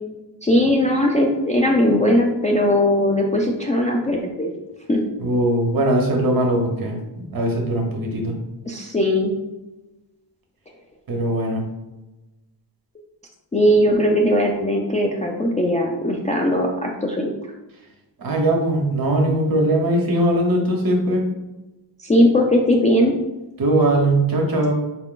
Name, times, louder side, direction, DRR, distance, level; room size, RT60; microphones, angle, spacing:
voice 1, 0.4-4.5 4.9-5.0 8.7-9.3 13.5-17.3 22.0-23.2, left 1 dB, 20° left, -1 dB, 0.3 m, -19 dB
voice 2, 5.2-7.0 7.3-8.3 11.1-11.6 18.2-21.2 23.6-24.7, right 1 dB, 50° right, 1 dB, 1.0 m, -20 dB
4.7 x 2.4 x 3.7 m, 1.0 s
wide cardioid pair, 145°, 45 cm